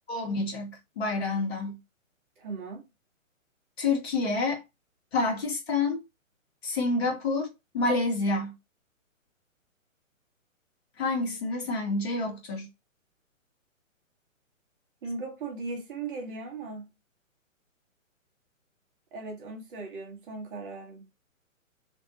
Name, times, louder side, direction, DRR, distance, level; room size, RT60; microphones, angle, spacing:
voice 1, 0.1-1.8 3.8-4.6 5.1-6.0 6.6-8.5 11.0-12.7, left 3 dB, 50° left, 1.5 m, -28 dB
voice 2, 2.4-2.8 15.0-16.9 19.1-21.0, right 3 dB, 40° right, 1.2 m, -38 dB
3.4 x 2.3 x 2.7 m
figure-of-eight pair, 130°, 40 cm